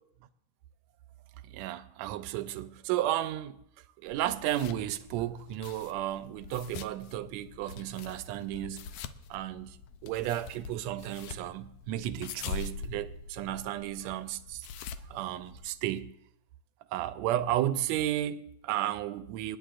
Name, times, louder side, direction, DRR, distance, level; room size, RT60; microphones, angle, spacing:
voice 1, 1.4-3.6 4.0-8.8 9.3-9.8 10.0-14.7 15.1-16.1 16.9-19.6, right 13 dB, 80° right, 1.7 m, -33 dB
sound 1, 4.1-16.0, left 6 dB, 75° left, 1.8 m, -44 dB
28.0 x 10.0 x 2.5 m
omnidirectional pair, 3.4 m